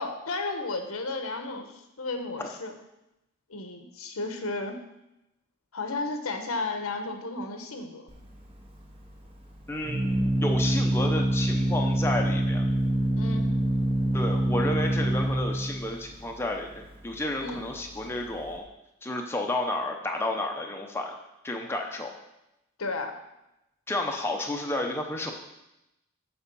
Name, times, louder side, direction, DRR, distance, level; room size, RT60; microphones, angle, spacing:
voice 1, 0.0-2.7 3.5-4.8 5.7-8.1 13.2-13.5 17.4-17.7 22.8-23.2, left 3 dB, 85° left, 5 dB, 1.1 m, -33 dB
Organ, 8.1-18.6, right 1 dB, 25° right, 1.0 m, -27 dB
voice 2, 9.7-10.1 10.4-12.6 14.1-18.6 19.0-21.2 21.4-22.1 23.9-25.3, left 1 dB, 10° left, 2 dB, 0.7 m, -31 dB
7.0 x 4.9 x 6.9 m, 0.90 s
head